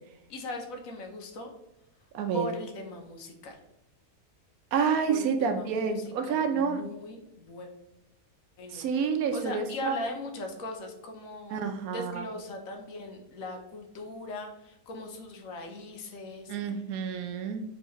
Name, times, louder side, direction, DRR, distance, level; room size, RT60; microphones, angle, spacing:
voice 1, 0.3-1.5 2.3-3.6 5.1-7.7 8.6-8.9 9.3-11.6 11.9-16.8, left 2 dB, 65° left, 3 dB, 1.1 m, -40 dB
voice 2, 2.1-2.5 4.7-6.8 8.7-10.0 11.5-12.2 16.5-17.6, right 6 dB, 75° right, 6 dB, 1.0 m, -28 dB
4.4 x 3.3 x 2.9 m, 0.88 s
omnidirectional pair, 1.6 m